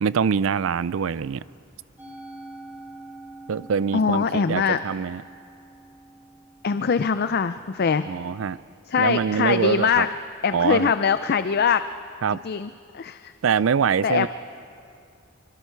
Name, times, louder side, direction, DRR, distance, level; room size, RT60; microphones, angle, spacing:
voice 1, 0.0-1.4 3.5-5.2 8.1-8.6 9.0-10.1 10.5-10.9 12.2-12.4 13.4-14.3, right 6 dB, 80° right, 19 dB, 0.4 m, -24 dB
Musical instrument, 2.0-8.4, right 2 dB, 10° right, 2.7 m, -45 dB
voice 2, 3.9-4.8 6.6-8.1 8.9-10.1 10.4-11.9 12.4-13.3 14.0-14.3, left 6 dB, 50° left, 12 dB, 0.4 m, -22 dB
26.0 x 24.0 x 4.6 m, 2.4 s
head